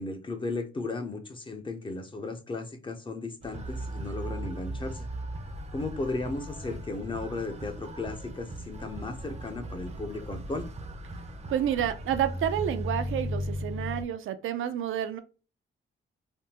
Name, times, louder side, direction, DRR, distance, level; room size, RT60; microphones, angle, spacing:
voice 1, 0.0-5.1 5.7-10.7, left 3 dB, 25° left, 6 dB, 0.6 m, -35 dB
sound 1, 3.4-14.0, equal, 30° right, 0.5 m, -37 dB
voice 2, 11.5-15.2, right 10 dB, 80° right, 10 dB, 0.4 m, -29 dB
3.4 x 2.2 x 2.8 m, 0.33 s
cardioid pair, 120°, 21 cm